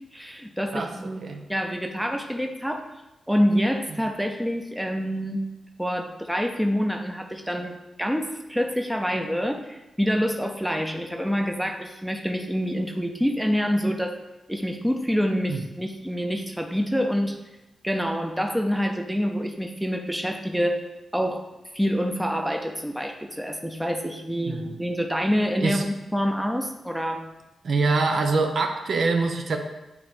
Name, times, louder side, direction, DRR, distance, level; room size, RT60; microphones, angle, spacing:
voice 1, 0.1-1.2 1.5-2.9 3.3-5.4 5.8-14.2 14.5-17.4 17.8-20.8 21.1-21.5 21.7-27.2, equal, ahead, 3 dB, 0.7 m, -26 dB
voice 2, 24.5-24.8 25.6-25.8 27.6-29.6, right 3 dB, 60° right, 4 dB, 0.8 m, -24 dB
9.6 x 3.3 x 5.2 m, 1.0 s
wide cardioid pair, 125°, 0 cm